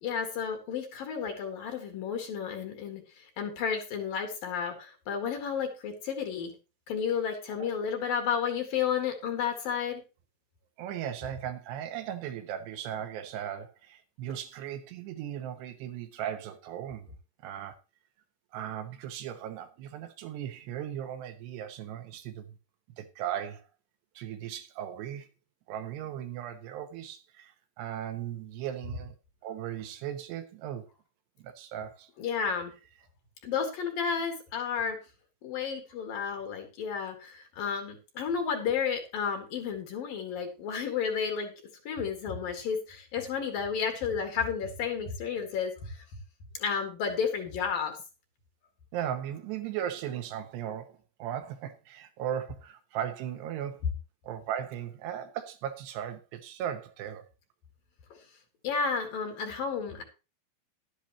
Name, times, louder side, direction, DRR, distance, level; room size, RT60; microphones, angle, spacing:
voice 1, 0.0-6.5 6.9-10.0 32.2-32.7 33.4-35.0 35.4-41.5 41.8-46.0 46.6-48.0 58.6-60.0, left 6 dB, 60° left, 3.1 m, -32 dB
voice 2, 10.8-17.1 17.4-17.7 18.5-22.6 23.0-23.6 24.2-25.3 25.7-29.2 29.4-30.9 31.4-32.1 48.9-53.8 54.2-57.2, right 10 dB, 75° right, 2.9 m, -37 dB
12.0 x 11.5 x 3.0 m
omnidirectional pair, 5.1 m